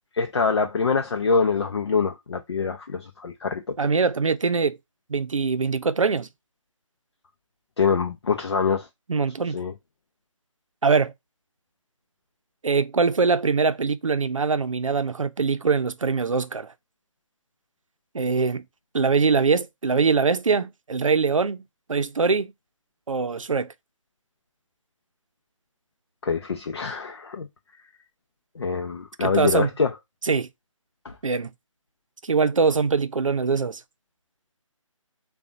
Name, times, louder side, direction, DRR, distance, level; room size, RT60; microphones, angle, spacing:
voice 1, 0.1-3.7 7.8-8.9 9.5-9.7 26.2-27.5 28.6-29.9 31.0-31.1, left 5 dB, 55° left, 0.6 m, -25 dB
voice 2, 3.8-4.8 5.1-6.3 9.1-9.6 10.8-11.1 12.6-16.7 18.1-18.6 18.9-21.6 21.9-22.5 23.1-23.7 29.2-29.7 30.2-30.5 31.2-31.5 32.2-33.8, right 5 dB, 75° right, 0.6 m, -22 dB
6.7 x 2.3 x 2.5 m
figure-of-eight pair, 150°, 17 cm